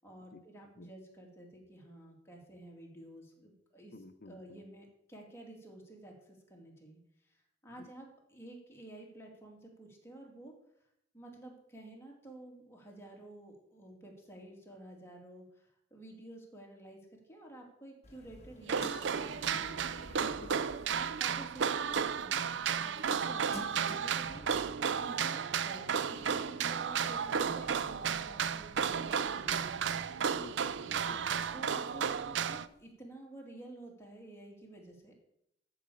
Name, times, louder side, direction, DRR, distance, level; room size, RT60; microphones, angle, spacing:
voice 1, 0.0-3.9 4.3-10.5 11.1-17.0 17.3-19.8 20.8-24.7 25.0-30.2 31.0-31.2 31.5-35.1, right 1 dB, 15° left, -1 dB, 2.6 m, -51 dB
voice 2, 3.9-4.6 7.8-7.9 20.1-20.7 30.4-31.3, left 3 dB, 55° left, 12 dB, 0.7 m, -51 dB
sound 1, 18.0-32.8, left 1 dB, 35° left, 1.4 m, -53 dB
sound 2, 18.6-32.7, right 7 dB, 70° right, 0.5 m, -33 dB
13.5 x 4.9 x 7.0 m, 0.76 s
head